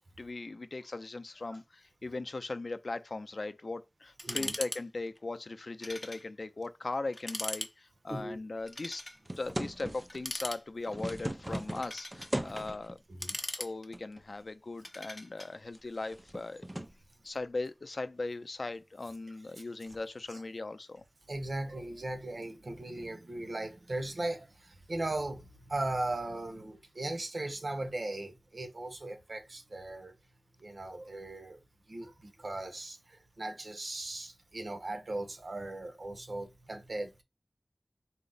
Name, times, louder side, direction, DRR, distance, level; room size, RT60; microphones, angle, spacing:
voice 1, 0.2-9.0 9.4-13.0 13.5-16.7 17.2-21.0, left 3 dB, 75° left, 0.4 m, -39 dB
sound 1, 4.2-4.8 5.1-5.2 5.8-6.2 6.6-6.7 7.1-7.7 8.7-9.2 10.1-11.0 11.6-12.3 13.0-14.1 14.8-15.5, left 1 dB, 20° left, 0.7 m, -39 dB
voice 2, 4.2-4.6 8.1-8.4 13.1-13.4 20.3-20.4 21.3-30.1 30.6-31.6 31.9-37.2, right 2 dB, 75° right, 0.8 m, -38 dB
sound 2, 9.2-10.2 10.7-13.0 13.9-14.4 14.8-14.9 15.5-17.0 19.9-20.1, right 1 dB, 30° right, 0.6 m, -39 dB
4.2 x 2.0 x 3.8 m
wide cardioid pair, 55°, 0 cm